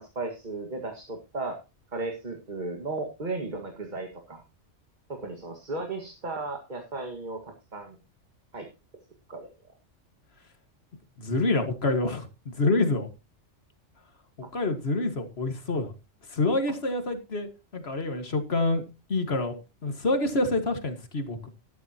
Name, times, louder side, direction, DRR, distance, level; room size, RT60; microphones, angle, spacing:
voice 1, 0.0-1.6 1.9-4.4 5.1-8.0 8.5-8.7 9.3-9.5 14.4-14.5, right 3 dB, 40° right, 3 dB, 1.9 m, -35 dB
voice 2, 11.2-13.1 14.5-15.9 16.3-18.8 19.1-19.6 19.8-21.5, left 2 dB, 60° left, 7 dB, 2.0 m, -27 dB
12.5 x 12.5 x 2.9 m, 0.28 s
omnidirectional pair, 1.2 m